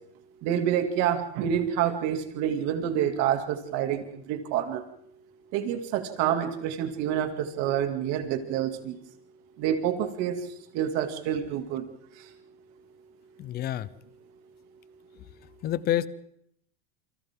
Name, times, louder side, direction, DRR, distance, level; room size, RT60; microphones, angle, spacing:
voice 1, 0.4-4.8 5.5-9.0 9.6-10.4 10.7-11.8, right 9 dB, 50° right, 5 dB, 2.6 m, -28 dB
voice 2, 13.4-13.9 15.6-16.1, left 12 dB, 25° left, 18 dB, 0.7 m, -27 dB
28.5 x 24.5 x 3.8 m, 0.73 s
supercardioid pair, 150°, 35 cm